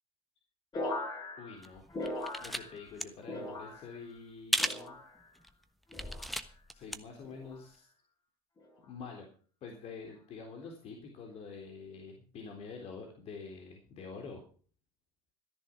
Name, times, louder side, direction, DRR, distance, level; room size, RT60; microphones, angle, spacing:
sound 1, 0.7-3.0 3.2-4.1 4.6-5.3 5.9-6.4 7.2-7.6 8.6-8.9, left 2 dB, 35° left, 5.7 m, -40 dB
voice 1, 1.4-1.8 2.4-5.0 6.7-7.9 8.8-9.3 9.6-14.4, left 5 dB, 50° left, 2 dB, 3.6 m, -47 dB
sound 2, 1.6-2.6 2.9-3.0 4.5-4.9 5.4-5.5 5.9-7.0 7.3-7.4, equal, ahead, 1.2 m, -34 dB
14.0 x 10.5 x 6.1 m, 0.41 s
supercardioid pair, 90°, 13 cm